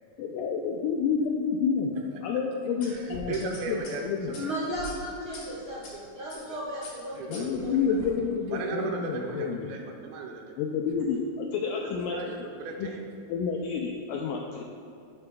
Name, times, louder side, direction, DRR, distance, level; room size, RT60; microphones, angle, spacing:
voice 1, 0.2-1.9 2.2-4.3 7.3-9.7 10.6-12.2 12.8-12.9 13.3-14.6, left 6 dB, 85° left, 1 dB, 1.9 m, -29 dB
sound 1, 2.8-5.9 6.3-6.5 6.8-8.1, left 2 dB, 55° left, 1.5 m, -43 dB
voice 2, 2.8-4.5 6.5-6.6 7.1-7.5 7.7-8.0 8.5-10.6 11.7-13.0, right 4 dB, 80° right, 1 dB, 2.6 m, -37 dB
voice 3, 4.3-7.7, equal, 50° right, -8 dB, 1.3 m, -35 dB
10.5 x 8.5 x 2.3 m, 2.5 s
omnidirectional pair, 4.4 m